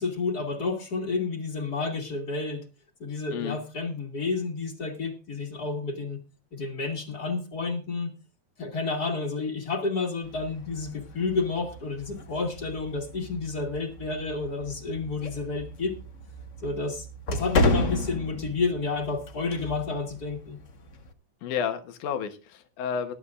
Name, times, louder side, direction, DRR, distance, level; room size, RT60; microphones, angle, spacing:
voice 1, 0.0-2.7 3.0-6.2 6.5-8.1 8.6-15.9 16.6-20.6, left 4 dB, 35° left, 4 dB, 2.1 m, -30 dB
sound 1, 10.2-21.1, left 2 dB, 70° left, 0.7 m, -33 dB
voice 2, 21.4-23.1, left 7 dB, 90° left, 7 dB, 2.6 m, -31 dB
21.0 x 11.5 x 2.4 m, 0.30 s
omnidirectional pair, 3.4 m